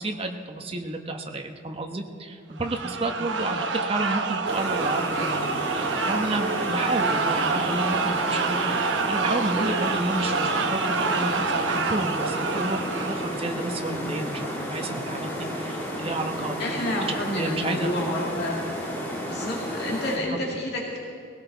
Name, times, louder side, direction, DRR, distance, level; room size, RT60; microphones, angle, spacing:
voice 1, 0.0-5.5 5.7-17.9 20.2-20.3, right 2 dB, 30° right, 3 dB, 1.1 m, -31 dB
sound 1, 2.6-13.5, right 4 dB, 75° right, 1.0 m, -27 dB
sound 2, 4.4-20.2, equal, 15° left, 3.0 m, -32 dB
voice 2, 16.6-18.6 19.2-21.0, left 1 dB, 60° left, -3 dB, 2.2 m, -30 dB
19.0 x 17.5 x 4.0 m, 2.4 s
head